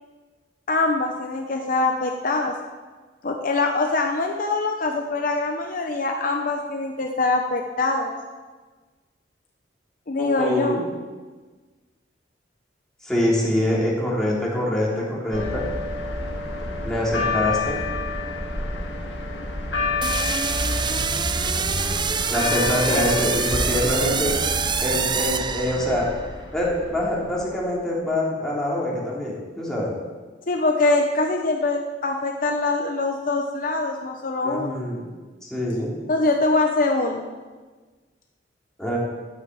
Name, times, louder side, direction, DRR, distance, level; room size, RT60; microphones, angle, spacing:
voice 1, 0.7-2.5 3.2-8.1 10.1-10.7 22.9-23.0 30.5-34.8 36.1-37.3, left 3 dB, 50° left, 3 dB, 0.9 m, -23 dB
voice 2, 10.2-10.8 13.0-15.7 16.8-17.8 22.3-24.4 24.8-26.1 26.5-30.0 34.4-35.1 35.5-35.9 38.8-39.0, left 1 dB, 5° left, -5 dB, 3.5 m, -24 dB
sound 1, 15.3-27.7, left 2 dB, 80° left, 2.2 m, -29 dB
sound 2, 20.0-26.2, right 6 dB, 25° right, 0.6 m, -26 dB
11.0 x 9.8 x 7.8 m, 1.4 s
head